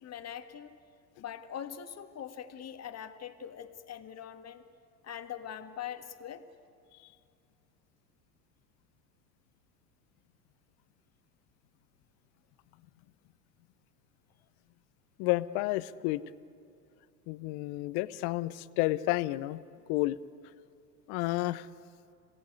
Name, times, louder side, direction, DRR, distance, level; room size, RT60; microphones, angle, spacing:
voice 1, 0.0-0.8 1.2-4.6 5.0-6.4, left 9 dB, 30° left, 8 dB, 1.7 m, -42 dB
voice 2, 15.2-16.2 17.3-19.6 19.9-20.2 21.1-21.7, left 18 dB, 50° left, 16 dB, 0.9 m, -30 dB
26.5 x 17.5 x 9.4 m, 2.6 s
hypercardioid pair, 80°, 50 cm